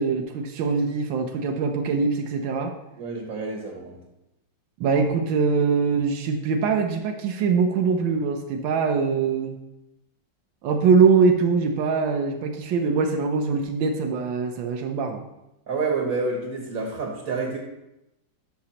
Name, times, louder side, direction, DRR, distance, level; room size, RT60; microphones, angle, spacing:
voice 1, 0.0-2.7 4.8-9.6 10.6-15.2, right 5 dB, 90° right, 4 dB, 1.5 m, -22 dB
voice 2, 3.0-4.0 15.7-17.6, right 4 dB, 50° right, 0 dB, 1.5 m, -28 dB
11.5 x 5.8 x 2.9 m, 0.91 s
omnidirectional pair, 2.0 m